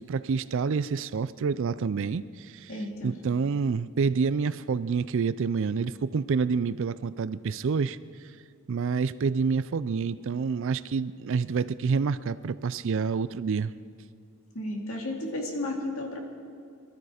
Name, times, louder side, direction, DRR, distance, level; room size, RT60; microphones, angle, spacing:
voice 1, 0.0-2.7 3.0-8.0 8.7-13.7, right 5 dB, 60° right, 16 dB, 0.4 m, -28 dB
voice 2, 2.7-3.1 14.5-16.2, left 1 dB, 65° left, 1 dB, 2.4 m, -33 dB
22.0 x 13.0 x 5.0 m, 2.3 s
head